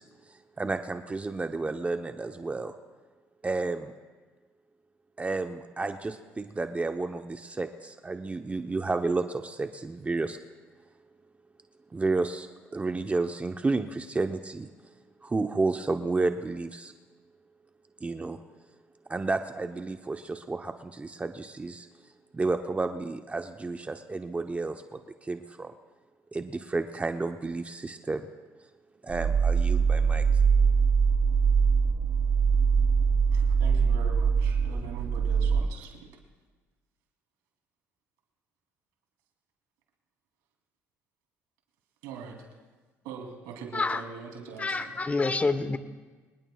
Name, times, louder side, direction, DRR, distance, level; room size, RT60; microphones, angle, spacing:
voice 1, 0.0-2.7 3.4-3.9 5.2-10.4 11.9-14.7 15.2-16.9 18.0-18.4 19.1-21.9 22.3-25.7 26.3-28.3 29.0-30.2, right 3 dB, 20° right, 6 dB, 0.9 m, -31 dB
sound 1, 29.1-35.6, right 6 dB, 55° right, 2.8 m, -23 dB
voice 2, 33.3-36.1 42.0-42.4 43.0-44.9, right 5 dB, 85° right, 1 dB, 3.1 m, -42 dB
voice 3, 44.6-45.8, left 3 dB, 25° left, 11 dB, 1.1 m, -27 dB
25.5 x 19.5 x 2.4 m, 1.4 s
supercardioid pair, 70°, 6 cm